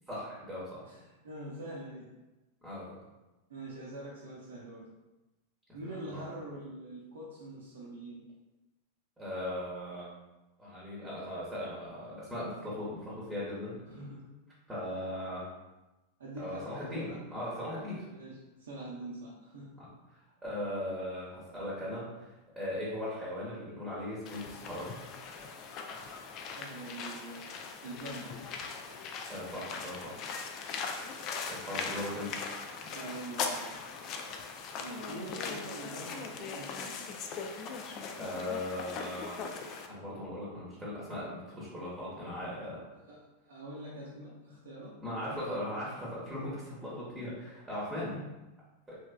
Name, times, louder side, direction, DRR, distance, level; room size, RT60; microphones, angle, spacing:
voice 1, 0.1-0.8 2.6-3.0 6.0-6.2 9.2-10.1 10.6-13.8 14.7-15.5 16.4-18.1 19.8-19.9 20.4-25.0 29.3-30.1 31.5-32.5 38.2-39.4 39.9-42.8 45.0-48.1 48.9-49.0, left 1 dB, 10° right, -7 dB, 0.9 m, -38 dB
voice 2, 0.8-2.1 3.5-4.9 5.7-8.2 13.9-14.3 16.2-17.2 18.1-19.8 26.6-27.5 27.8-28.4 29.7-29.8 32.9-33.7 34.8-37.1 42.9-45.0 48.1-48.3, right 1 dB, 65° right, -5 dB, 0.5 m, -44 dB
sound 1, 24.3-39.9, left 5 dB, 35° left, 0.3 m, -40 dB
3.2 x 3.0 x 2.2 m, 1.1 s
figure-of-eight pair, 90°, 0 cm